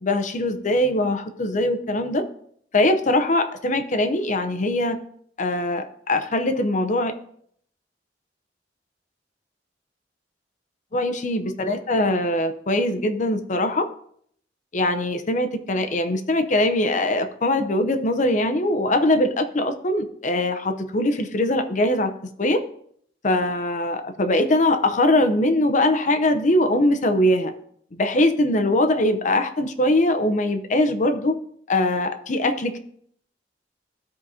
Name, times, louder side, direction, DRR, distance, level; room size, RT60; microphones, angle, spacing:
voice 1, 0.0-2.2 2.7-5.0 5.4-7.1 10.9-13.9 14.7-22.6 23.2-27.5 28.0-31.3 31.7-32.8, left 1 dB, 45° left, 8 dB, 0.7 m, -22 dB
13.5 x 4.9 x 2.7 m, 0.65 s
head